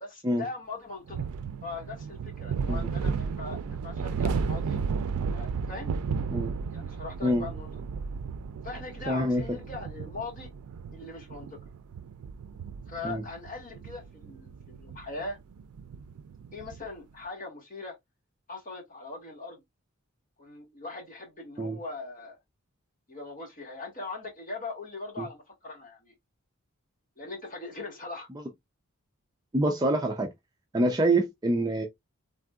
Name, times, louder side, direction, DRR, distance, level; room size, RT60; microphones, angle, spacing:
voice 1, 0.0-1.2 1.6-4.8 5.3-5.9 6.3-7.7 8.6-10.5 10.9-11.6 12.9-15.4 16.5-17.9 18.5-19.6 20.4-22.4 23.1-26.1 27.2-28.3, left 3 dB, 35° left, 1.6 m, -40 dB
sound 1, 1.1-16.9, right 5 dB, 90° right, 0.4 m, -34 dB
voice 2, 9.1-9.4 13.0-13.2 21.6-21.8 25.2-25.3 29.5-30.3 30.7-31.9, right 1 dB, 15° right, 0.4 m, -26 dB
3.6 x 2.5 x 2.2 m
head